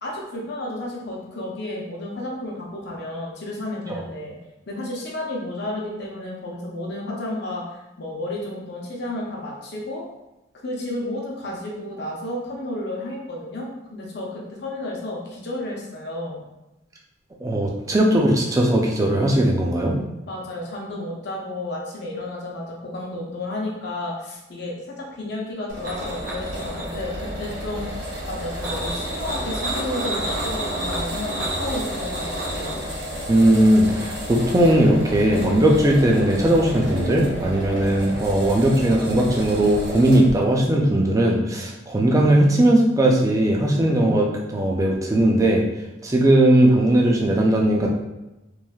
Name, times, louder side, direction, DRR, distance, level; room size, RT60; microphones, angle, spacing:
voice 1, 0.0-4.3 4.7-7.6 8.0-10.0 10.6-16.4 20.3-32.8, left 1 dB, 60° left, -3 dB, 0.7 m, -32 dB
voice 2, 17.4-20.0 33.3-45.6 46.0-47.9, right 1 dB, 15° right, -1 dB, 0.4 m, -18 dB
sound 1, 25.7-40.4, equal, 80° right, 0.9 m, -32 dB
sound 2, 25.8-27.3 28.4-32.8, right 1 dB, 50° right, 0.7 m, -30 dB
3.1 x 2.5 x 2.3 m, 0.98 s
head